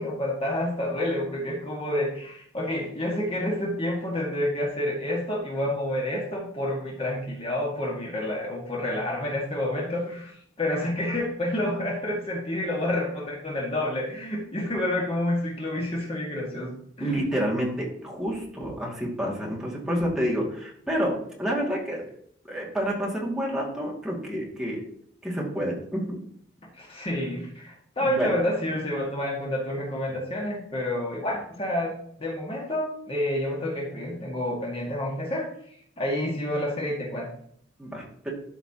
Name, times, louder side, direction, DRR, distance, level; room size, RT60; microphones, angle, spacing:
voice 1, 0.0-17.2 26.7-35.5 36.0-37.3, left 1 dB, 30° left, -2 dB, 1.8 m, -29 dB
voice 2, 17.0-22.0 22.5-24.8 25.2-26.2 28.0-28.3 37.8-38.3, equal, 5° right, -4 dB, 2.2 m, -29 dB
12.5 x 5.9 x 2.9 m, 0.64 s
head